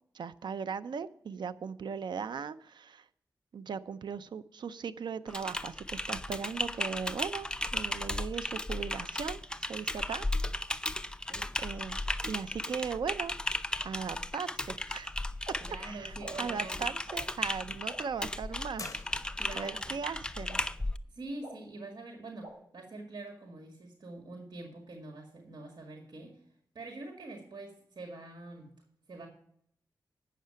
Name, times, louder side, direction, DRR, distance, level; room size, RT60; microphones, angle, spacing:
voice 1, 0.1-3.1 3.5-9.4 9.7-10.3 11.6-12.0 12.2-13.3 13.8-15.1 15.9-18.9 19.6-20.6, right 6 dB, 85° right, 12 dB, 0.6 m, -38 dB
Typing, 5.3-21.0, left 1 dB, 10° left, 0.6 m, -35 dB
sound 1, 15.4-15.5 16.2-16.3 17.1-17.2 17.9-18.0 18.8-18.9 19.6-19.7 20.5-20.6 21.4-21.5 22.4-22.5, right 1 dB, 35° right, 6.0 m, -46 dB
voice 2, 15.6-16.8 19.4-20.0 21.1-26.5 26.7-28.7 29.1-29.3, right 2 dB, 70° right, 3 dB, 1.9 m, -45 dB
sound 2, 18.8-19.8, left 4 dB, 45° left, 0.9 m, -46 dB
9.2 x 6.6 x 8.8 m, 0.68 s
cardioid pair, 60°, 8 cm